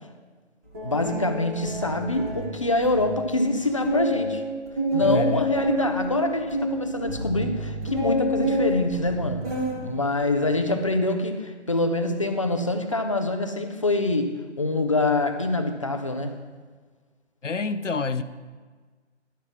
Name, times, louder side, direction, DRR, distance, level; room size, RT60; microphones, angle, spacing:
sound 1, 0.7-3.1 3.5-3.6 3.8-9.8 10.2-10.6, right 1 dB, 10° right, 1.1 m, -28 dB
voice 1, 0.8-4.4 4.9-9.5 9.8-16.4, left 2 dB, 25° left, 7 dB, 0.6 m, -25 dB
voice 2, 5.0-5.5 17.4-18.2, left 3 dB, 80° left, 13 dB, 0.7 m, -27 dB
11.5 x 6.2 x 6.1 m, 1.4 s
figure-of-eight pair, 150°, 36 cm